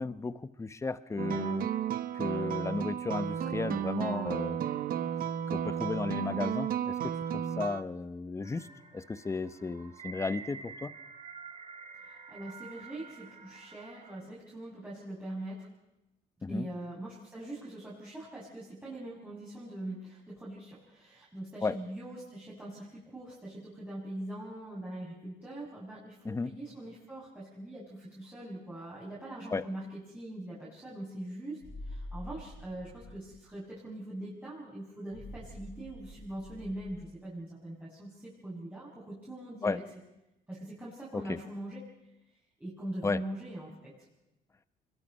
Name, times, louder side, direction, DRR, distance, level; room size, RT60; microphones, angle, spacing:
voice 1, 0.0-1.7 2.1-4.6 5.5-8.7 8.9-10.9 16.4-16.7 21.6-21.7 26.2-26.5 29.5-29.6 39.6-39.8 41.1-41.4 43.0-43.2, left 4 dB, 15° left, 14 dB, 0.9 m, -34 dB
sound 1, 1.2-7.8, right 9 dB, 60° right, 1.2 m, -33 dB
sound 2, 8.4-14.2, right 6 dB, 35° right, 3.1 m, -48 dB
voice 2, 12.0-15.7 16.5-39.8 40.5-41.8 42.6-43.9, right 1 dB, 10° right, -8 dB, 6.7 m, -42 dB
sound 3, 31.6-33.4 35.1-37.1, left 1 dB, 70° left, 7.0 m, -46 dB
26.0 x 21.5 x 5.5 m, 0.92 s
cardioid pair, 110°, 17 cm